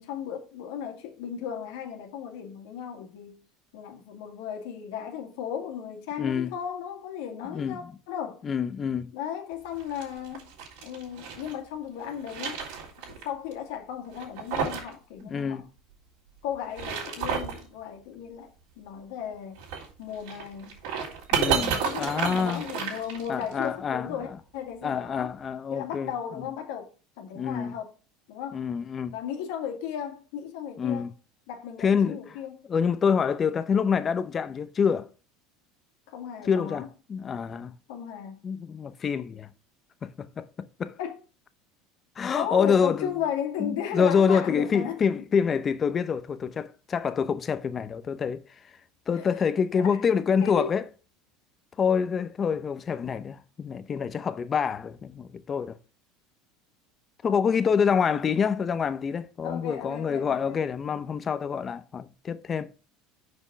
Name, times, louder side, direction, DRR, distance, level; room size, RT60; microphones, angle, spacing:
voice 1, 0.0-3.4 3.7-8.4 9.1-10.5 10.8-12.6 13.1-15.7 16.4-19.6 20.0-20.8 21.5-25.3 25.7-27.9 28.3-28.7 29.1-31.1 31.5-32.7 36.1-36.9 37.9-38.4 41.0-41.2 42.3-45.0 49.1-49.4 49.8-50.0 50.4-50.8 57.8-58.1 59.4-60.6, left 8 dB, 75° left, 1.9 m, -35 dB
voice 2, 6.2-6.5 7.5-7.8 8.4-9.1 15.2-15.6 21.3-22.6 23.3-24.1 24.8-26.1 27.3-27.7 28.5-29.1 30.8-31.1 31.8-32.2 32.7-35.1 36.5-37.7 38.4-39.5 40.0-40.5 40.8-41.0 42.2-43.1 43.6-48.7 49.1-50.8 51.8-55.8 57.2-62.8, left 6 dB, 30° left, 0.7 m, -26 dB
sound 1, 9.7-11.5 12.0-13.2 13.5-13.6 14.1-14.9 15.2-15.3 16.5-17.6 19.6-23.6, right 6 dB, 75° right, 3.6 m, -31 dB
6.2 x 5.3 x 6.0 m
supercardioid pair, 115°, 0 cm